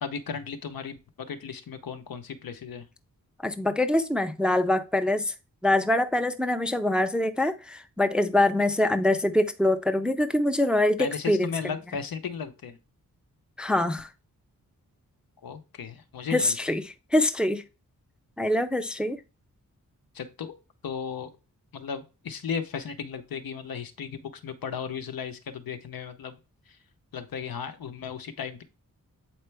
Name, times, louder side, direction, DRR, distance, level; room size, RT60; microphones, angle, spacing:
voice 1, 0.0-2.9 11.0-12.8 15.4-16.8 20.1-20.5 20.8-21.3 21.7-26.4 27.1-28.6, left 6 dB, 85° left, 0.9 m, -35 dB
voice 2, 3.4-5.3 5.6-11.7 13.6-14.1 16.3-17.6 18.4-19.2, left 1 dB, 5° right, 0.4 m, -24 dB
7.8 x 4.4 x 3.4 m
wide cardioid pair, 175°, 34 cm